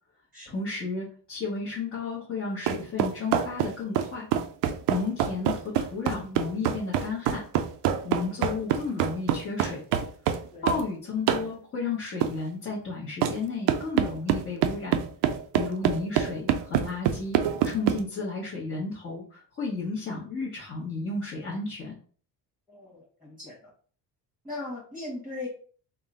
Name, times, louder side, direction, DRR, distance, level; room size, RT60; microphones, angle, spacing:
voice 1, 0.4-4.3 4.9-7.4 8.0-9.8 10.6-15.0 15.5-21.9, left 4 dB, 35° left, -6 dB, 1.1 m, -33 dB
sound 1, 2.7-10.9 11.3-11.5 12.2-12.4 13.2-13.4 13.7-18.0, right 9 dB, 85° right, 0.6 m, -25 dB
voice 2, 22.7-23.7 24.4-25.5, left 2 dB, ahead, -4 dB, 1.3 m, -39 dB
3.6 x 2.2 x 3.7 m, 0.43 s
cardioid pair, 135°, 41 cm